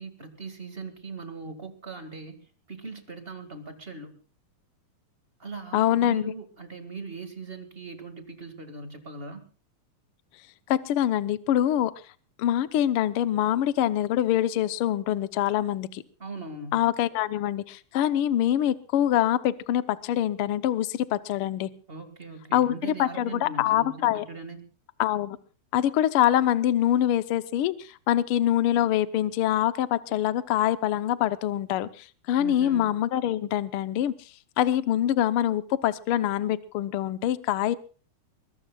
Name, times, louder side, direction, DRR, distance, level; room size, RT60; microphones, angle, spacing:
voice 1, 0.0-2.4 2.7-4.2 5.4-9.5 16.2-16.8 21.9-24.6 32.4-32.9, right 3 dB, 20° right, 7 dB, 1.8 m, -40 dB
voice 2, 5.7-6.3 10.7-11.9 12.4-16.0 16.7-21.7 22.5-24.2 25.0-25.4 25.7-34.1 34.6-37.8, left 12 dB, 70° left, 13 dB, 1.3 m, -25 dB
23.0 x 21.5 x 2.4 m, 0.37 s
omnidirectional pair, 3.5 m